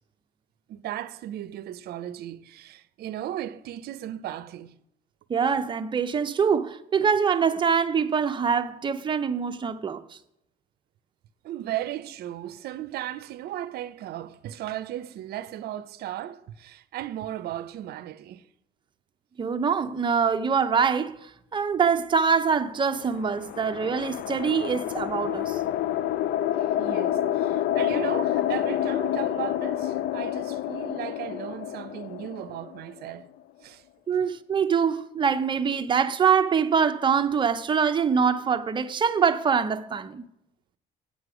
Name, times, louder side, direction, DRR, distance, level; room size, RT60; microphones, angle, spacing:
voice 1, 0.7-4.8 11.4-18.4 26.5-33.3 33.6-33.8, right 12 dB, 70° right, 0.6 m, -36 dB
voice 2, 5.3-10.0 19.4-21.2 21.5-25.6 34.1-40.2, right 6 dB, 30° right, 0.7 m, -24 dB
sound 1, 22.8-33.2, left 11 dB, 70° left, 0.4 m, -28 dB
8.4 x 7.8 x 4.9 m
cardioid pair, 110°, 17 cm